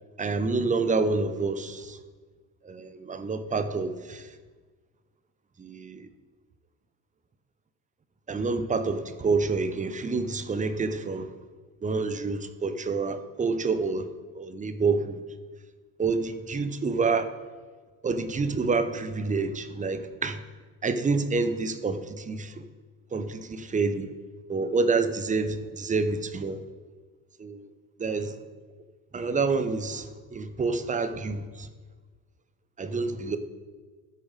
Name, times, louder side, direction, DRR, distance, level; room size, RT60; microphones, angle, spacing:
voice 1, 0.2-2.0 2.6-4.3 5.6-6.1 8.3-11.3 11.8-14.1 14.3-15.2 16.0-17.3 18.0-20.4 20.8-22.6 23.1-24.1 24.5-26.6 27.4-27.7 28.0-28.3 29.1-31.7 32.8-33.4, right 4 dB, 15° right, 10 dB, 0.8 m, -28 dB
13.5 x 7.9 x 4.0 m, 1.4 s
figure-of-eight pair, 60°, 50 cm